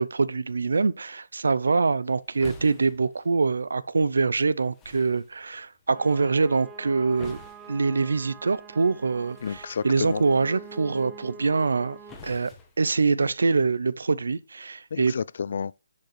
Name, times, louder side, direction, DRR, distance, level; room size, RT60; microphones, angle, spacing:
voice 1, 0.0-7.4 7.7-12.0 12.2-12.5 12.8-15.1, right 4 dB, 90° right, 0.5 m, -24 dB
sound 1, 1.5-13.6, left 3 dB, 10° left, 1.1 m, -51 dB
sound 2, 5.9-12.1, right 5 dB, 10° right, 0.4 m, -45 dB
voice 2, 9.4-10.2 14.9-15.7, left 6 dB, 50° left, 0.3 m, -30 dB
10.5 x 5.2 x 3.2 m
hypercardioid pair, 170°, 0 cm